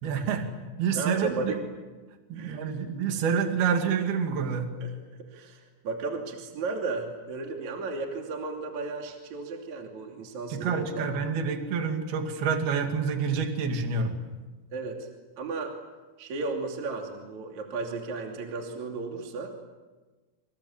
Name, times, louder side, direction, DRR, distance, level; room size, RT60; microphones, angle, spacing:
voice 1, 0.0-0.5 0.8-1.6 2.3-4.7 10.5-14.1, right 6 dB, 60° right, 4 dB, 4.2 m, -28 dB
voice 2, 1.0-1.6 2.4-2.7 4.8-4.9 5.3-11.2 14.7-15.1 15.4-15.7 16.2-19.6, right 3 dB, 45° right, 1 dB, 3.8 m, -34 dB
28.0 x 27.5 x 7.3 m, 1.2 s
omnidirectional pair, 5.2 m